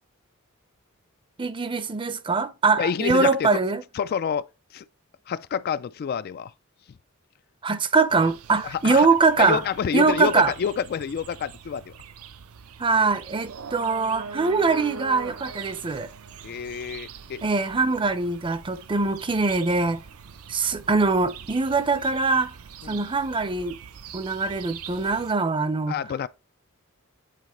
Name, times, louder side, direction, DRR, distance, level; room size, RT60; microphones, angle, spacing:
voice 1, 1.4-3.8 7.6-9.6 9.9-10.5 12.8-16.1 17.4-20.0 20.5-22.5 22.9-23.8 24.1-26.0, right 4 dB, 25° right, 0.5 m, -23 dB
voice 2, 2.8-3.5 3.9-4.5 4.7-4.8 5.3-6.5 8.6-9.1 9.4-11.9 16.4-17.5 22.8-23.1 25.9-26.3, left 7 dB, 45° left, 0.3 m, -28 dB
sound 1, 8.1-25.3, right 6 dB, 80° right, 0.6 m, -43 dB
8.4 x 3.9 x 3.0 m
head